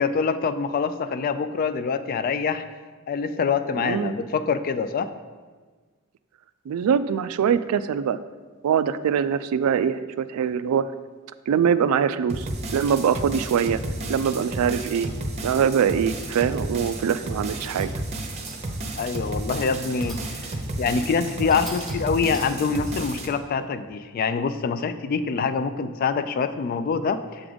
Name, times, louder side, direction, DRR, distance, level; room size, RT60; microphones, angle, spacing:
voice 1, 0.0-2.6 3.1-5.1 19.0-20.3 20.8-27.4, left 5 dB, 40° left, 12 dB, 0.3 m, -25 dB
voice 2, 3.7-4.1 6.7-8.2 8.6-10.9 11.5-13.8 14.1-15.1 15.4-17.9, right 7 dB, 85° right, 16 dB, 0.3 m, -23 dB
sound 1, 12.3-23.3, right 2 dB, 30° right, 0.7 m, -32 dB
sound 2, 16.3-16.7 17.4-18.1 18.4-18.9 19.8-20.5 21.0-21.1 21.5-22.8, right 1 dB, ahead, 0.8 m, -45 dB
6.9 x 3.6 x 5.1 m, 1.4 s
head